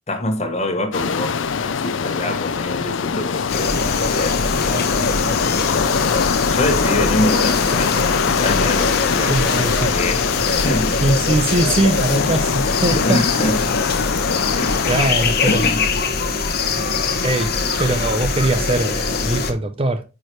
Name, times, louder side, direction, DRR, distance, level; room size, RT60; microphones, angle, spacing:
voice 1, 0.1-6.1 6.5-11.0 12.6-13.7 14.6-15.0 15.5-15.8, left 1 dB, 35° left, 1.3 m, -26 dB
sound 1, 0.9-15.1, left 6 dB, 70° left, 0.5 m, -23 dB
sound 2, 3.5-19.5, left 4 dB, 50° left, 1.0 m, -22 dB
voice 2, 9.3-9.9 11.0-13.2 14.8-15.6 17.2-17.5 17.8-20.0, right 2 dB, 30° right, 0.6 m, -21 dB
8.8 x 4.8 x 3.1 m
head